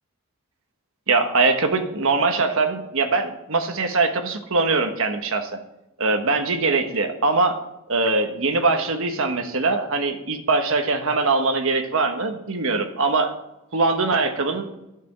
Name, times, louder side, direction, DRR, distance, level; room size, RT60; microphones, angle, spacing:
voice 1, 1.1-5.5 6.0-7.6 7.9-13.3 13.7-14.7, right 3 dB, 65° right, 5 dB, 1.3 m, -22 dB
12.0 x 7.0 x 7.6 m, 0.94 s
head